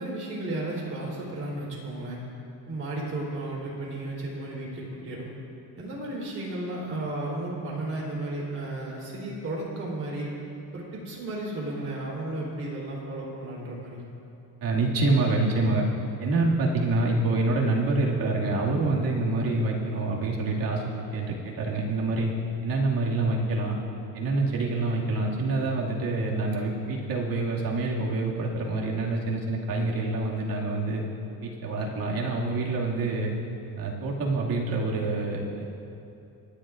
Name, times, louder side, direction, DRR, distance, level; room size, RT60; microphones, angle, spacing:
voice 1, 0.0-2.2 2.7-5.3 5.8-10.3 10.7-14.0, right 2 dB, 35° right, -4 dB, 3.7 m, -34 dB
voice 2, 14.6-15.8 16.2-20.8 21.1-22.3 22.6-23.8 24.1-31.0 31.4-33.3 33.8-35.6, right 2 dB, 65° right, -3 dB, 2.2 m, -26 dB
27.5 x 11.5 x 2.5 m, 2.8 s
cardioid pair, 160°, 38 cm